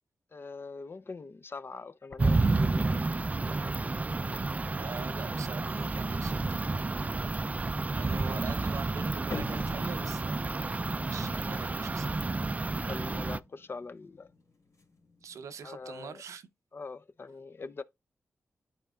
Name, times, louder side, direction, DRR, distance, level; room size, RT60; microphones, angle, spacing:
voice 1, 0.3-3.0 8.0-8.4 11.4-11.6 12.8-14.3 15.6-16.2 16.7-17.8, left 4 dB, 45° left, 0.6 m, -43 dB
sound 1, 2.2-13.4, right 3 dB, 30° right, 0.4 m, -30 dB
voice 2, 4.7-6.6 7.9-10.4 11.0-12.1 15.2-16.5, right 6 dB, 90° right, 0.7 m, -44 dB
sound 2, 9.3-16.0, left 4 dB, 85° left, 3.1 m, -48 dB
11.5 x 4.4 x 2.4 m
cardioid pair, 60°, 5 cm